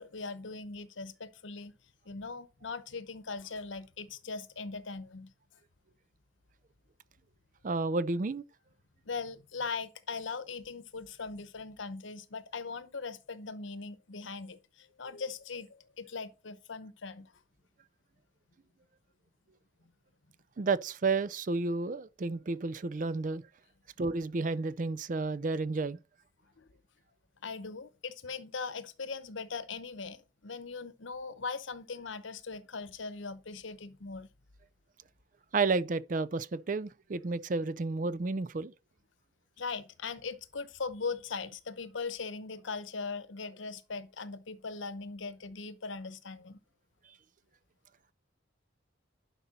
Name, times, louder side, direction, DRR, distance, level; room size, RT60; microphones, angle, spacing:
voice 1, 0.0-1.7 2.0-5.3 9.1-17.3 26.6-26.7 27.4-34.3 39.6-46.6, left 4 dB, 75° left, 0.9 m, -40 dB
voice 2, 7.6-8.4 20.6-23.4 24.0-26.0 35.5-38.7, right 3 dB, 40° right, 0.4 m, -31 dB
11.0 x 5.4 x 4.1 m
head